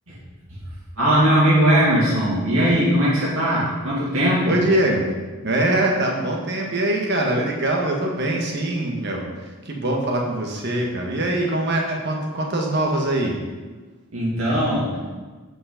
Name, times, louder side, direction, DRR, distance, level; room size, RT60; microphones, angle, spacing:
voice 1, 1.0-4.6 14.1-15.2, equal, 75° right, -7 dB, 2.6 m, -19 dB
voice 2, 4.5-5.0 5.4-13.3, right 1 dB, 50° right, 0 dB, 1.5 m, -23 dB
8.4 x 5.5 x 5.1 m, 1.3 s
head